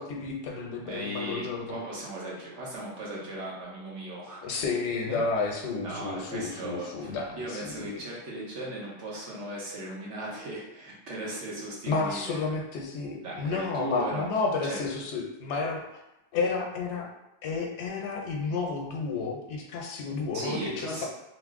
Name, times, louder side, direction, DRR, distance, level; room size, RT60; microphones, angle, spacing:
voice 1, 0.0-1.8 4.4-7.9 11.9-16.0 16.3-17.1 17.4-21.1, left 4 dB, 80° left, 0 dB, 0.9 m, -31 dB
voice 2, 0.8-4.4 5.1-5.2 5.8-12.4 13.2-14.3 14.6-14.8 20.3-21.1, right 1 dB, 90° right, -5 dB, 1.2 m, -37 dB
2.9 x 2.0 x 3.5 m, 0.89 s
omnidirectional pair, 1.2 m